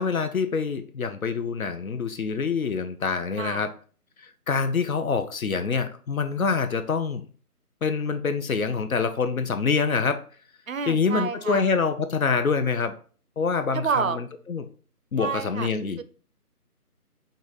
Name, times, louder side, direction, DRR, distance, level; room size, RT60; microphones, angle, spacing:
voice 1, 0.0-3.7 4.5-7.2 7.8-10.2 10.9-12.9 13.4-14.7 15.1-16.0, left 5 dB, 65° left, 9 dB, 0.6 m, -26 dB
voice 2, 10.7-11.6 13.7-14.2 15.2-15.7 16.0-16.1, right 6 dB, 60° right, 13 dB, 0.5 m, -29 dB
4.9 x 2.7 x 3.8 m, 0.41 s
figure-of-eight pair, 165°, 46 cm